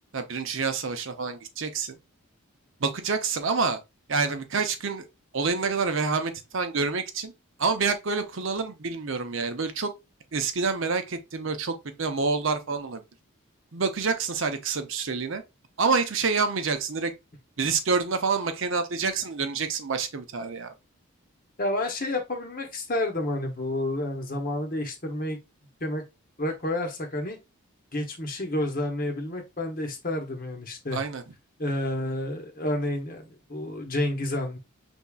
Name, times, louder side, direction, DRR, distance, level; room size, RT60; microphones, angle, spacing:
voice 1, 0.1-2.0 2.8-3.8 4.1-5.0 5.3-7.3 7.6-9.9 10.3-13.0 13.7-15.4 15.8-17.1 17.6-20.7 30.9-31.2, right 4 dB, 60° right, 0.6 m, -27 dB
voice 2, 21.6-25.4 25.8-26.0 26.4-27.4 27.9-31.0 31.6-34.6, left 1 dB, 40° left, 0.9 m, -30 dB
5.4 x 3.5 x 2.3 m
head